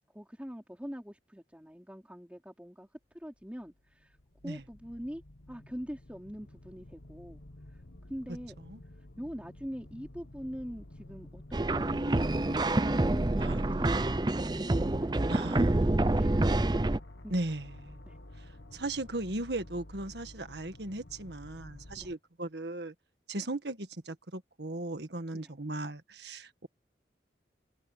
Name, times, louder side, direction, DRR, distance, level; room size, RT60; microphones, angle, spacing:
voice 1, 0.1-2.9 3.1-4.2 4.4-5.2 5.5-7.4 8.1-8.6 9.2-15.2 15.8-16.4 17.2-17.5 18.0-18.2 22.0-22.1 23.3-23.5 25.3-25.5, equal, 5° right, 4.0 m, -43 dB
sound 1, 3.4-22.2, left 1 dB, 90° left, 1.6 m, -51 dB
sound 2, 11.5-17.0, right 2 dB, 25° right, 0.5 m, -27 dB
voice 2, 15.3-15.8 17.3-18.0 18.7-22.9 23.3-26.7, right 2 dB, 75° right, 1.7 m, -37 dB
head